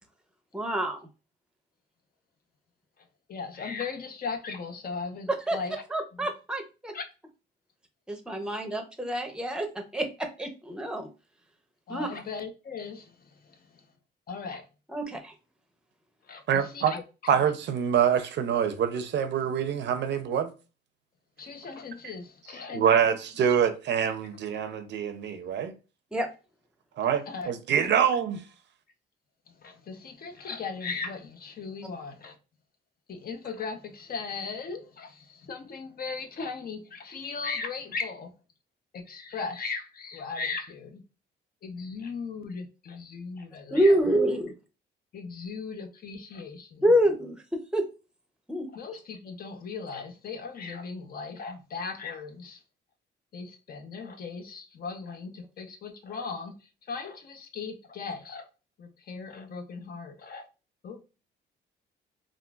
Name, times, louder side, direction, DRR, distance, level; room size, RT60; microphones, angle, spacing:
voice 1, 0.5-1.1 5.5-5.6 5.9-6.9 8.1-11.1 11.9-12.1 14.9-15.3 26.1-26.3 43.7-44.5 46.8-47.9 48.5-48.7, equal, 5° right, 0.7 m, -27 dB
voice 2, 3.3-5.8 6.1-6.3 6.9-7.1 11.9-13.8 14.3-14.7 16.3-17.0 21.4-23.2 27.3-27.5 27.9-28.0 29.5-32.4 33.1-38.3 38.9-41.0 41.6-44.2 44.5-44.6 45.1-46.8 48.7-52.6 53.3-58.5 58.8-60.5 60.8-61.0, left 5 dB, 50° left, 0.7 m, -38 dB
voice 3, 16.5-16.9 17.3-20.5 22.7-25.7 27.0-28.4, right 8 dB, 65° right, 0.6 m, -25 dB
3.7 x 2.5 x 2.3 m
cardioid pair, 90°, 20 cm